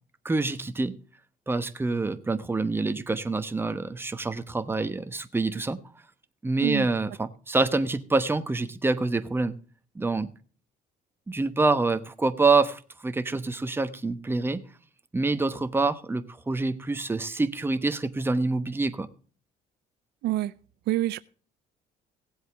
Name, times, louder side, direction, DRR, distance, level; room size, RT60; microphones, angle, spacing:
voice 1, 0.2-0.9 1.5-5.8 6.4-9.6 9.9-10.3 11.3-14.6 15.1-19.1, right 3 dB, 15° right, 1.0 m, -26 dB
voice 2, 20.2-20.5 20.9-21.2, right 15 dB, 75° right, 0.5 m, -26 dB
17.5 x 7.9 x 3.4 m
cardioid pair, 110°, 17 cm